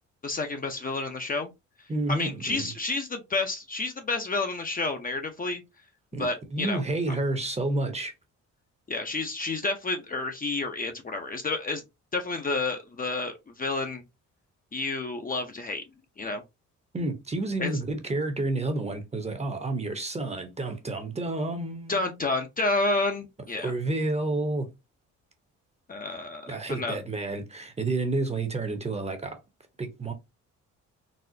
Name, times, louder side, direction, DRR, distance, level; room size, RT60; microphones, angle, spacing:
voice 1, 0.2-1.5 2.1-5.6 6.2-6.8 8.9-11.8 12.1-14.0 14.7-15.8 16.2-16.4 17.6-17.7 21.9-23.7 25.9-27.0, left 3 dB, 30° left, 0.7 m, -30 dB
voice 2, 1.9-2.7 6.1-8.1 16.9-22.1 23.6-24.7 26.5-29.4 29.8-30.1, right 2 dB, 20° right, 0.8 m, -30 dB
4.1 x 2.1 x 2.6 m
cardioid pair, 90°, 30 cm